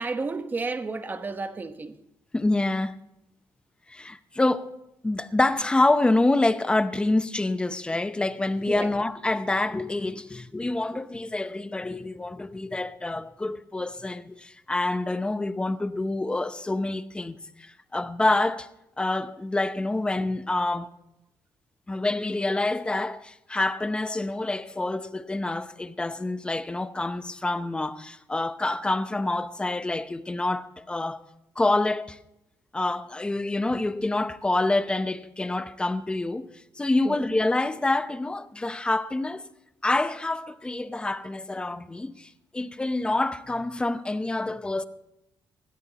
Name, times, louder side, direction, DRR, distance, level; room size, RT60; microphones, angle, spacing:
voice 1, 0.0-2.0 8.7-8.9 37.0-37.2, right 3 dB, 25° right, 1.1 m, -31 dB
voice 2, 2.3-3.0 3.9-4.7 5.0-18.7 19.0-20.9 21.9-31.2 31.6-32.2 32.7-36.5 36.8-39.5 39.8-44.8, left 2 dB, 10° left, 0.7 m, -27 dB
21.0 x 16.0 x 2.9 m
cardioid pair, 150°, 8 cm